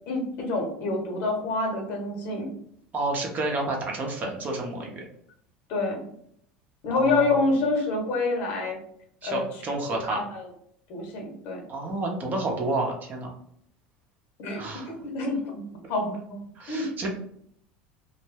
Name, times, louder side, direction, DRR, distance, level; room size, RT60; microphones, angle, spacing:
voice 1, 0.1-2.5 5.7-6.1 6.8-8.8 9.2-9.5 9.9-10.5 10.9-11.6 14.4-15.6 15.9-16.4 16.7-16.9, left 3 dB, 55° left, 1 dB, 0.9 m, -27 dB
voice 2, 2.9-5.0 6.9-7.4 9.2-10.2 11.7-13.3 14.6-14.9 16.6-17.1, right 2 dB, 40° right, 0 dB, 0.7 m, -30 dB
2.2 x 2.1 x 3.3 m, 0.69 s
hypercardioid pair, 80°, 5 cm